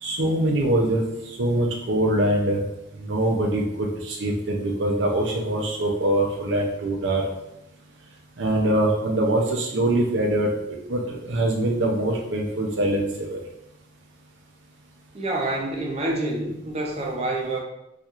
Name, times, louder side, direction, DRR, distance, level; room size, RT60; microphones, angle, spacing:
voice 1, 0.0-2.6 3.0-7.3 8.4-10.5 10.9-13.4, right 1 dB, 75° right, -1 dB, 0.5 m, -23 dB
voice 2, 15.1-17.6, right 2 dB, 35° right, -1 dB, 0.6 m, -27 dB
4.3 x 2.5 x 2.4 m, 0.85 s
head